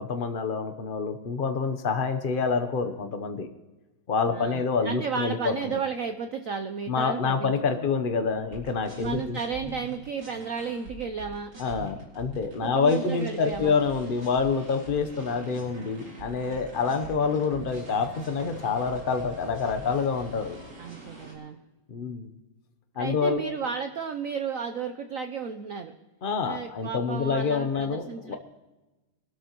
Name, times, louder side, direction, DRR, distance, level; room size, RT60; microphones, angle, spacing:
voice 1, 0.0-3.5 4.1-5.7 6.9-9.4 11.6-20.6 21.9-22.3 23.0-23.4 26.2-28.4, left 5 dB, 85° left, 7 dB, 0.4 m, -27 dB
voice 2, 4.3-7.8 9.0-11.5 12.6-13.8 20.8-21.6 23.0-25.9 26.4-28.4, right 6 dB, 90° right, 8 dB, 0.7 m, -33 dB
sound 1, 8.3-21.3, right 1 dB, 50° right, 4.4 m, -44 dB
23.5 x 12.5 x 3.0 m, 1.1 s
omnidirectional pair, 2.4 m